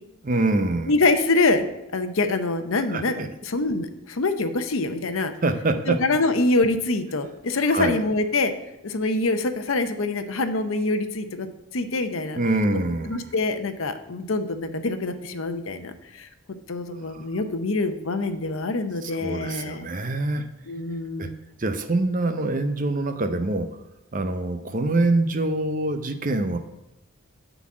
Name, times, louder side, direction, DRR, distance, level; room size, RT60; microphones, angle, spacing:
voice 1, 0.2-0.9 2.9-3.3 5.4-6.0 7.7-8.0 12.4-13.2 17.0-17.2 19.0-20.4 21.2-21.3 21.6-23.7 24.1-26.6, right 2 dB, 40° right, 8 dB, 0.6 m, -25 dB
voice 2, 0.9-1.6 1.9-5.3 5.9-8.5 8.8-11.5 11.7-12.4 13.1-16.3 16.7-19.9 20.7-21.4, left 2 dB, 70° left, 8 dB, 0.8 m, -25 dB
9.6 x 4.1 x 7.3 m, 0.90 s
head